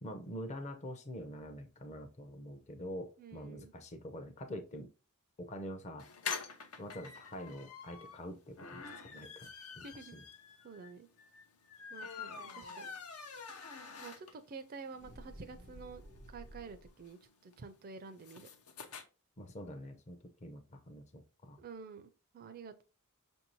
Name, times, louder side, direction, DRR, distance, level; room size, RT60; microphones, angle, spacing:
voice 1, 0.0-4.9 5.4-6.0 6.8-9.5 9.8-9.9 10.1-10.2 19.4-21.6, equal, 30° left, 0.5 m, -45 dB
voice 2, 3.2-3.7 9.8-10.1 10.6-11.1 11.9-12.9 14.0-16.0 16.3-18.5 21.6-22.8, right 4 dB, 40° right, 0.4 m, -49 dB
sound 1, 6.0-14.6 15.0-15.1 15.3-15.4 15.6-19.0, left 6 dB, 80° left, 0.7 m, -46 dB
sound 2, 14.9-17.1, equal, 50° left, 1.0 m, -53 dB
6.0 x 2.6 x 2.9 m
head